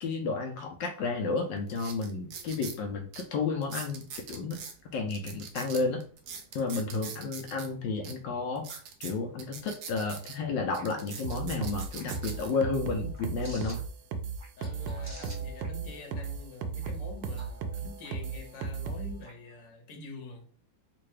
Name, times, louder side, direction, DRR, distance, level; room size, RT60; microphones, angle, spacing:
voice 1, 0.0-4.6 4.9-6.0 6.5-13.8, left 4 dB, 80° left, 1.3 m, -32 dB
sound 1, 1.0-1.1 1.7-2.8 3.1-3.2 3.6-4.7 5.1-7.7 8.0-8.1 8.6-10.4 10.7-12.5 13.1-13.4, right 6 dB, 70° right, 1.1 m, -42 dB
sound 2, 10.1-19.6, right 2 dB, 20° right, 0.4 m, -52 dB
sound 3, 11.2-19.1, right 5 dB, 90° right, 1.3 m, -35 dB
voice 2, 14.6-20.5, left 3 dB, 50° left, 1.2 m, -46 dB
3.7 x 2.5 x 3.2 m
omnidirectional pair, 2.0 m